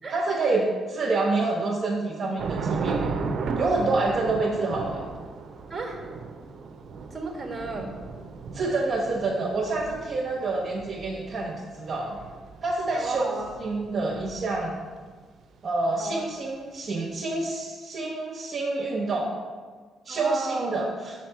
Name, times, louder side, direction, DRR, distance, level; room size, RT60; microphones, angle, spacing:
voice 1, 0.1-3.1 3.6-5.0 8.5-12.2 12.6-13.2 13.6-14.7 15.6-19.3 20.0-21.1, right 3 dB, 40° right, -3 dB, 1.1 m, -27 dB
Thunder / Rain, 2.4-14.9, right 4 dB, 60° right, 0.5 m, -35 dB
voice 2, 5.7-6.0 7.1-8.0 10.5-10.7 12.9-13.6 16.0-16.2 20.1-20.9, right 3 dB, 25° right, 1 dB, 1.4 m, -34 dB
5.0 x 4.3 x 5.7 m, 1.5 s
cardioid pair, 90°, 0 cm